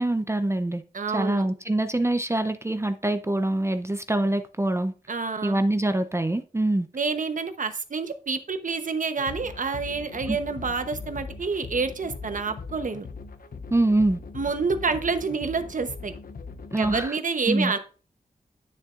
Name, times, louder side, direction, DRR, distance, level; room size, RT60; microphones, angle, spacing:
voice 1, 0.0-0.8 1.1-4.9 5.4-6.9 10.3-10.4 13.7-14.2 16.7-17.2 17.5-17.7, right 1 dB, 15° right, 0.6 m, -24 dB
voice 2, 0.9-1.5 5.1-5.6 6.9-13.1 14.3-16.1 16.8-17.8, right 4 dB, 55° right, 1.0 m, -28 dB
sound 1, 9.2-17.0, left 4 dB, 65° left, 0.7 m, -40 dB
10.0 x 6.7 x 2.5 m
wide cardioid pair, 75°, 16 cm